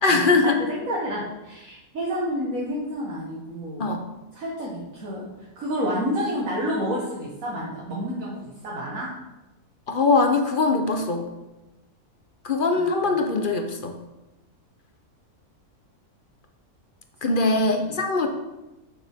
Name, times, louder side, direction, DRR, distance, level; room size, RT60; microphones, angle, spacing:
voice 1, 0.0-0.6 3.8-4.0 9.9-11.3 12.4-14.0 17.2-18.3, left 3 dB, 40° left, 4 dB, 0.8 m, -21 dB
voice 2, 0.6-3.9 4.3-9.1 12.8-13.1 17.3-17.9, equal, 60° right, -5 dB, 1.8 m, -30 dB
8.9 x 7.0 x 3.6 m, 1.0 s
omnidirectional pair, 1.6 m